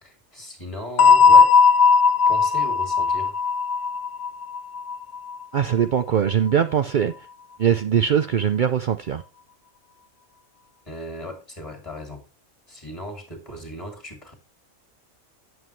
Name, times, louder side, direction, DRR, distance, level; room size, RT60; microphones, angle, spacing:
voice 1, 0.0-1.6 2.3-3.4 10.8-12.2 12.7-14.3, equal, 20° left, 2.7 m, -37 dB
sound 1, 1.0-5.6, left 5 dB, 55° left, 0.8 m, -17 dB
voice 2, 5.5-7.1 7.6-9.2, right 8 dB, 70° right, 0.4 m, -21 dB
9.5 x 8.0 x 3.2 m
omnidirectional pair, 1.5 m